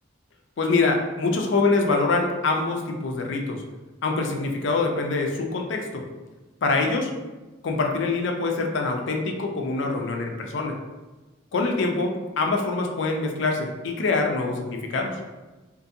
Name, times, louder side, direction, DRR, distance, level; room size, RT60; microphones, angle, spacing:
voice 1, 0.6-3.6 4.0-6.0 6.6-7.1 7.6-10.8 11.5-15.2, left 3 dB, 65° left, 3 dB, 0.4 m, -24 dB
2.6 x 2.5 x 2.5 m, 1.2 s
head